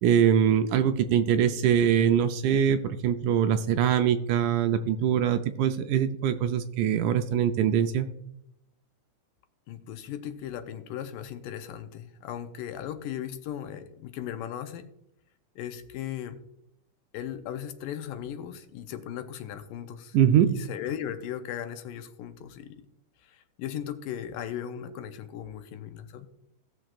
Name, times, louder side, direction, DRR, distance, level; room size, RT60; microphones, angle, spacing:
voice 1, 0.0-8.1 20.1-20.6, right 9 dB, 80° right, 7 dB, 1.9 m, -23 dB
voice 2, 9.7-14.9 15.6-16.4 17.1-20.2 20.5-22.9 23.2-26.3, left 10 dB, 80° left, 8 dB, 2.3 m, -37 dB
18.0 x 6.3 x 2.4 m, 0.82 s
omnidirectional pair, 3.9 m